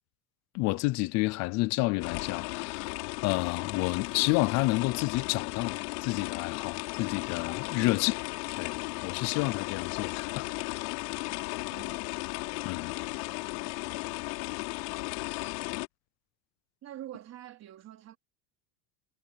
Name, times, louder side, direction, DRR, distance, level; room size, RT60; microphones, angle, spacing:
voice 1, 0.5-8.2 8.6-8.7 9.0-10.9 12.6-12.9, left 22 dB, 35° left, 0.5 m, -30 dB
sound 1, 2.0-15.9, left 28 dB, 70° left, 5.5 m, -35 dB
voice 2, 11.7-12.0 16.8-18.2, right 12 dB, 35° right, 3.7 m, -45 dB
cardioid pair, 170°, 48 cm